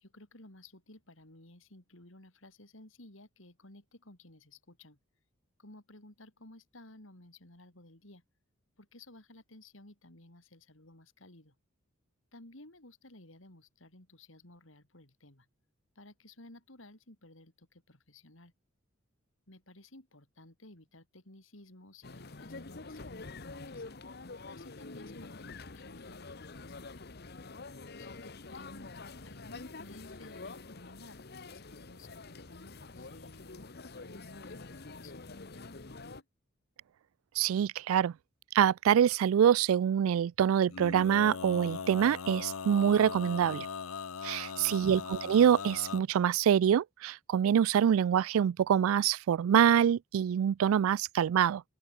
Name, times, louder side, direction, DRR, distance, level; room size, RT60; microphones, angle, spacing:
voice 1, 0.0-5.0 5.6-8.2 8.8-11.5 12.3-15.5 16.0-18.5 19.5-23.8 24.5-27.1 27.9-33.7 34.0-36.3 44.5-45.0, left 1 dB, 70° left, 4.0 m, -55 dB
sound 1, 22.0-36.2, left 3 dB, 50° left, 1.1 m, -46 dB
voice 2, 37.4-38.1 38.5-43.7 44.2-51.6, right 9 dB, 85° right, 0.3 m, -25 dB
Male singing, 40.7-46.0, left 5 dB, 90° left, 0.8 m, -39 dB
open air
head